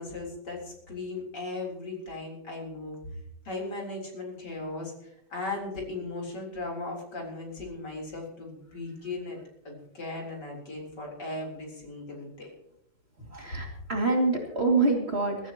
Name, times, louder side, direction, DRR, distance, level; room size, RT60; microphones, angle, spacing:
voice 1, 0.0-3.0 3.4-9.4 9.6-12.5 13.5-13.6, left 2 dB, 55° left, -1 dB, 4.3 m, -37 dB
voice 2, 13.2-15.5, right 3 dB, 30° right, 0 dB, 2.7 m, -26 dB
22.5 x 13.5 x 3.0 m, 0.78 s
omnidirectional pair, 2.2 m